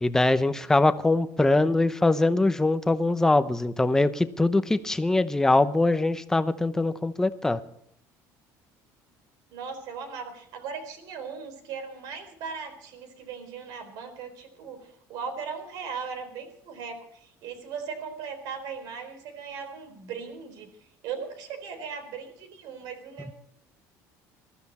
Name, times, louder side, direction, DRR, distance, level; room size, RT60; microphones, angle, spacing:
voice 1, 0.0-7.6, left 2 dB, 5° left, 11 dB, 0.8 m, -23 dB
voice 2, 9.5-23.3, right 6 dB, 65° right, 7 dB, 4.1 m, -38 dB
21.5 x 14.0 x 4.3 m, 0.69 s
cardioid pair, 165°, 7 cm